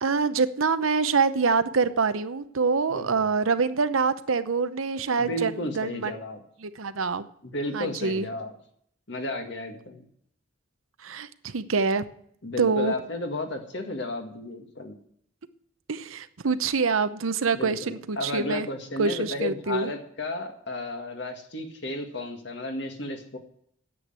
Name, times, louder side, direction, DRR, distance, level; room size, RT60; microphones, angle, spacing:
voice 1, 0.0-6.1 6.6-7.3 7.7-8.3 11.0-12.0 12.6-12.9 15.9-18.7 19.0-19.9, right 4 dB, 85° right, 12 dB, 0.8 m, -25 dB
voice 2, 2.9-3.3 5.2-6.4 7.4-8.5 9.1-10.1 12.4-15.0 17.5-23.4, left 2 dB, 55° left, 5 dB, 1.9 m, -33 dB
9.8 x 8.0 x 8.7 m, 0.67 s
head